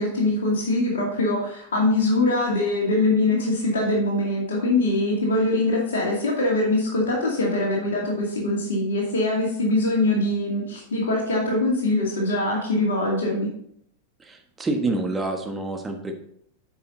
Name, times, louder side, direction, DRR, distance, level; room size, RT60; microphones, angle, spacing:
voice 1, 0.0-13.5, left 2 dB, 65° left, -2 dB, 2.2 m, -23 dB
voice 2, 14.2-16.1, right 2 dB, 15° right, 4 dB, 1.3 m, -27 dB
9.4 x 5.7 x 3.9 m, 0.69 s
figure-of-eight pair, 90°, 0 cm